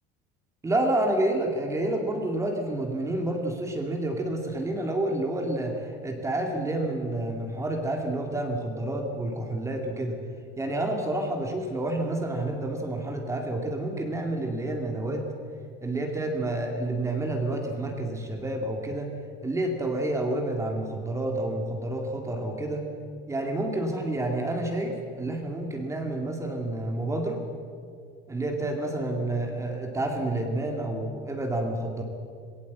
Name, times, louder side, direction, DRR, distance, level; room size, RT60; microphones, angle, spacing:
voice 1, 0.6-10.2 10.6-15.3 15.8-19.1 19.4-22.9 23.3-27.4 28.3-32.0, right 1 dB, 15° right, 2 dB, 2.2 m, -29 dB
18.5 x 18.0 x 8.3 m, 2.2 s
cardioid pair, 145°, 20 cm